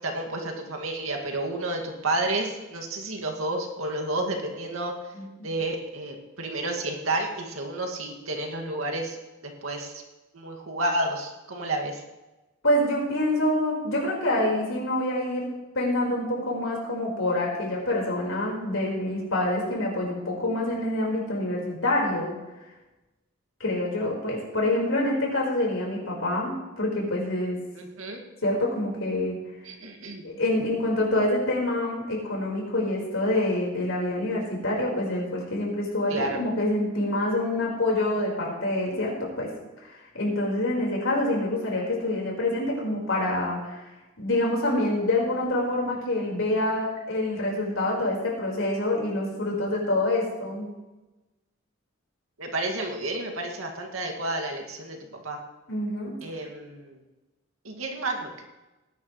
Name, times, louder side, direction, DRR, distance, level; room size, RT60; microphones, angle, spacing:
voice 1, 0.0-4.9 5.4-9.2 9.4-10.0 10.3-12.0 27.7-28.2 29.6-30.2 36.1-36.4 52.4-55.0 55.2-55.4 56.2-57.0 57.6-58.4, right 2 dB, 90° right, 2 dB, 2.2 m, -30 dB
voice 2, 12.6-22.4 23.6-27.6 28.4-29.4 30.2-39.5 39.8-43.8 44.2-50.7 55.7-56.1, left 1 dB, 75° left, -3 dB, 4.7 m, -26 dB
19.0 x 11.0 x 3.2 m, 1.1 s
head